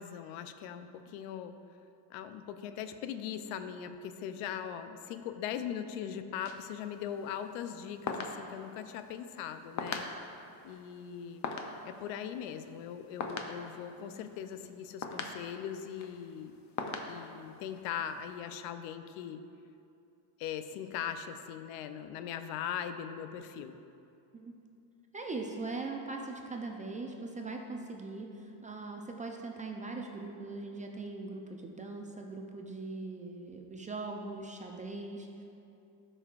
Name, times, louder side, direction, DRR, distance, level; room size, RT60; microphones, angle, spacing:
voice 1, 0.0-1.6 2.1-10.1 10.6-11.4 11.8-16.5 17.1-19.4 20.4-23.8, left 9 dB, 80° left, 10 dB, 0.6 m, -40 dB
sound 1, 6.5-18.4, left 4 dB, 35° left, 0.6 m, -43 dB
voice 2, 25.1-35.4, right 3 dB, 15° right, 1 dB, 0.4 m, -41 dB
13.0 x 5.5 x 2.4 m, 2.6 s
cardioid pair, 120°, 49 cm